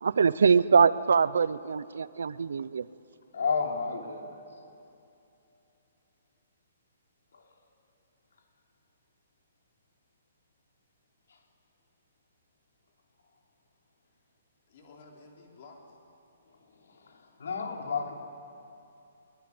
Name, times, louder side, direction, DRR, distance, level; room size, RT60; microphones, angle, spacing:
voice 1, 0.0-2.9, right 6 dB, 80° right, 18 dB, 0.7 m, -23 dB
voice 2, 3.3-4.4 7.3-7.5 11.3-11.4 16.7-18.1, left 5 dB, 80° left, 2 dB, 3.4 m, -32 dB
voice 3, 14.7-16.0, left 3 dB, 35° left, 1 dB, 3.4 m, -52 dB
22.0 x 21.0 x 9.7 m, 2.8 s
hypercardioid pair, 180°, 0 cm